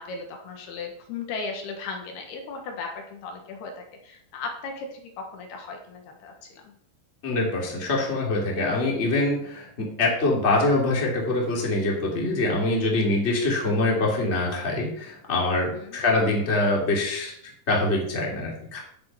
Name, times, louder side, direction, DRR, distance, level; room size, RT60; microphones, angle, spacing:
voice 1, 0.0-6.7 8.9-9.0 12.9-13.0 15.7-16.0, left 4 dB, 75° left, 3 dB, 3.4 m, -37 dB
voice 2, 7.2-17.3 17.7-18.8, left 2 dB, 20° left, -2 dB, 2.4 m, -24 dB
10.5 x 7.5 x 5.8 m, 0.68 s
omnidirectional pair, 4.7 m